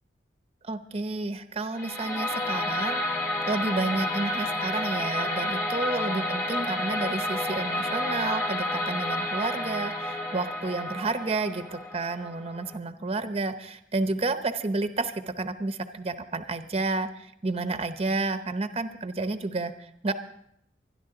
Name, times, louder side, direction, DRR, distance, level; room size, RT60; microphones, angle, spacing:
voice 1, 0.6-3.0 3.5-20.1, right 3 dB, 35° right, 9 dB, 0.7 m, -30 dB
sound 1, 1.7-12.8, left 1 dB, 15° left, 1.5 m, -30 dB
24.5 x 10.5 x 3.9 m, 0.70 s
head